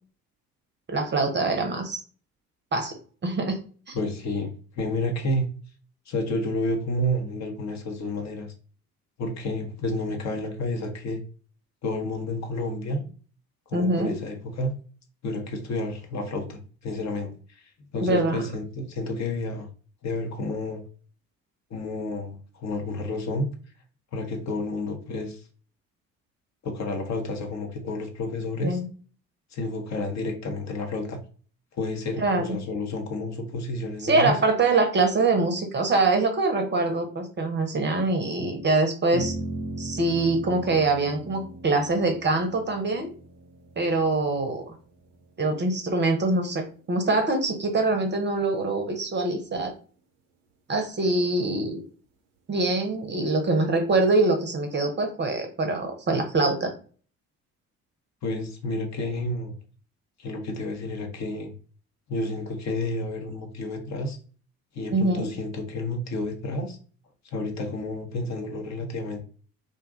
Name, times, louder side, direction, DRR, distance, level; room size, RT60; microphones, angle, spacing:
voice 1, 0.9-2.0 2.7-2.9 3.2-3.6 3.9-4.0 13.7-14.2 18.0-18.4 28.6-28.9 32.2-32.6 34.0-39.4 39.8-43.1 43.8-44.7 45.4-49.7 50.7-51.8 52.5-56.7 64.9-65.3, right 2 dB, 25° right, 5 dB, 0.7 m, -24 dB
voice 2, 3.9-5.4 6.1-8.5 9.2-11.2 11.8-13.0 13.7-14.7 15.2-19.7 20.0-20.8 21.7-23.5 24.1-25.4 26.6-28.8 29.5-31.2 31.7-34.4 58.2-59.5 60.2-61.5 62.1-64.2 64.7-66.8 67.3-69.2, left 2 dB, 40° left, 4 dB, 0.7 m, -30 dB
sound 1, 39.1-45.7, right 2 dB, 80° right, 0.7 m, -38 dB
2.5 x 2.2 x 3.6 m, 0.40 s
figure-of-eight pair, 50°, 44 cm